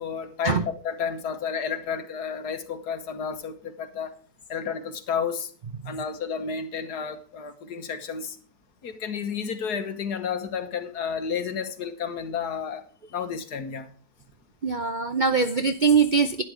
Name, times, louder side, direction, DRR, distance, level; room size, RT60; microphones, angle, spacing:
voice 1, 0.0-4.1 4.5-5.5 5.9-8.4 8.8-12.9 13.1-13.9, left 6 dB, 75° left, 8 dB, 1.8 m, -31 dB
voice 2, 14.6-16.4, right 5 dB, 55° right, 9 dB, 0.5 m, -22 dB
12.0 x 9.9 x 4.9 m, 0.41 s
omnidirectional pair, 1.8 m